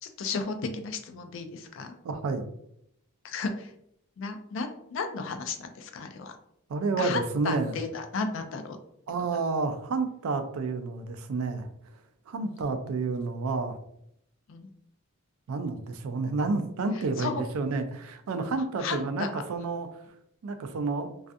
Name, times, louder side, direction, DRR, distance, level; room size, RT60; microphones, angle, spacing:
voice 1, 0.0-1.9 3.2-3.7 4.2-6.3 7.0-8.8 12.4-12.5 14.5-14.7 16.9-17.4 18.8-19.4, left 4 dB, 60° left, 6 dB, 0.3 m, -34 dB
voice 2, 2.0-2.5 6.7-7.8 9.1-11.7 12.3-13.8 15.5-19.9 20.4-21.1, right 3 dB, 70° right, 8 dB, 0.3 m, -30 dB
2.4 x 2.3 x 2.5 m, 0.74 s
head